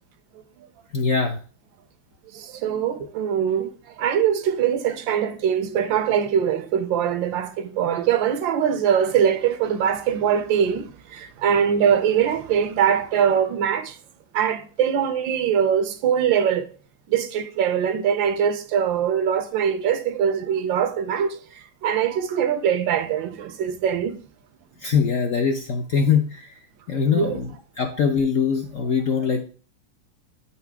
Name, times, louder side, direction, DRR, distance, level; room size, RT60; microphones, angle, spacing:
voice 1, 0.9-1.4 24.8-26.5 26.9-29.4, left 6 dB, 65° left, 0.8 m, -22 dB
voice 2, 2.3-14.0 14.3-16.7 17.1-24.2 27.1-27.4, right 8 dB, 80° right, 1.4 m, -22 dB
8.8 x 4.8 x 3.5 m
omnidirectional pair, 2.1 m